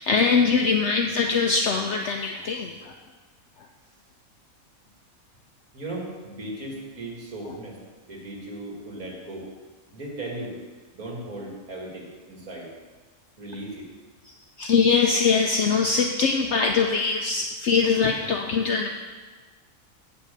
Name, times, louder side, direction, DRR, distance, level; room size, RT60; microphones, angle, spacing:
voice 1, 0.0-2.9 14.6-18.9, left 5 dB, 65° left, 4 dB, 0.8 m, -22 dB
voice 2, 5.7-7.8 8.0-9.5 9.9-10.5 10.9-12.7 13.4-13.9, right 1 dB, 80° right, -3 dB, 2.5 m, -37 dB
8.3 x 5.7 x 6.7 m, 1.4 s
omnidirectional pair, 1.5 m